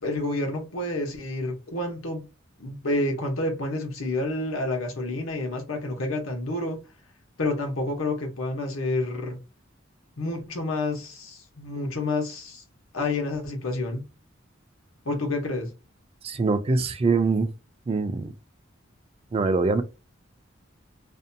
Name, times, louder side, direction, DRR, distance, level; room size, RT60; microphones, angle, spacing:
voice 1, 0.0-2.3 2.6-6.8 7.4-9.4 10.2-12.6 12.9-14.1 15.0-15.7, left 2 dB, 85° left, 0.9 m, -29 dB
voice 2, 16.2-17.5 17.9-18.3 19.3-19.8, right 3 dB, 30° right, 0.3 m, -23 dB
2.6 x 2.2 x 2.6 m
head